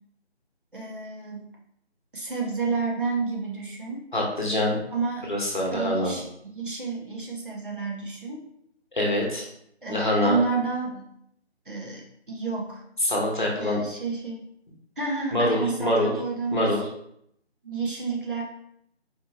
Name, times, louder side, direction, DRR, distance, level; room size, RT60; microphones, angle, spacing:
voice 1, 0.7-1.4 2.1-4.0 4.9-5.3 5.7-8.4 9.8-11.0 11.7-12.8 13.6-14.5 15.0-16.8 17.6-18.4, right 4 dB, 50° right, -2 dB, 0.8 m, -30 dB
voice 2, 4.1-4.8 5.3-6.1 8.9-9.4 9.9-10.4 13.0-13.8 15.3-16.1 16.5-16.9, left 1 dB, 45° left, -2 dB, 0.9 m, -24 dB
4.2 x 2.7 x 2.9 m, 0.73 s
figure-of-eight pair, 175°, 33 cm